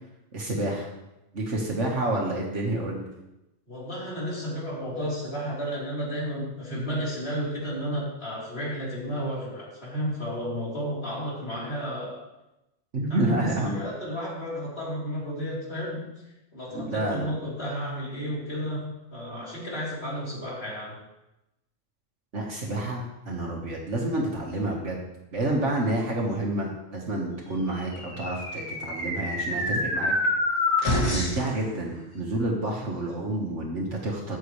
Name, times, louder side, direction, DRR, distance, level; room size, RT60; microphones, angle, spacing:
voice 1, 0.3-0.9 1.3-3.1 12.9-13.8 16.7-17.3 22.3-25.0 25.3-30.1 31.1-34.4, right 1 dB, 65° right, -1 dB, 1.8 m, -29 dB
voice 2, 3.7-12.2 13.1-16.0 16.5-18.8 19.1-20.9, equal, 50° left, -6 dB, 4.1 m, -32 dB
sound 1, 27.9-31.5, left 1 dB, 85° left, 2.9 m, -27 dB
13.5 x 9.2 x 3.3 m, 0.95 s
omnidirectional pair, 1.3 m